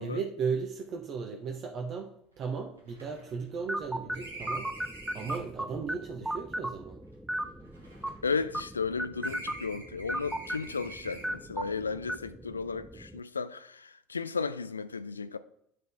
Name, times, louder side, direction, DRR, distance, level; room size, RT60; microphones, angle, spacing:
voice 1, 0.0-4.7 5.1-7.0, right 5 dB, 40° right, 0.8 m, -36 dB
sound 1, 1.5-1.6 1.8-1.9 2.3-5.6 6.5-8.9 9.2-11.5, right 1 dB, 85° right, 1.2 m, -47 dB
sound 2, 3.7-13.2, right 1 dB, 5° right, 0.4 m, -37 dB
voice 2, 8.2-15.4, left 5 dB, 80° left, 0.4 m, -34 dB
10.5 x 3.9 x 3.4 m
figure-of-eight pair, 65°, 0 cm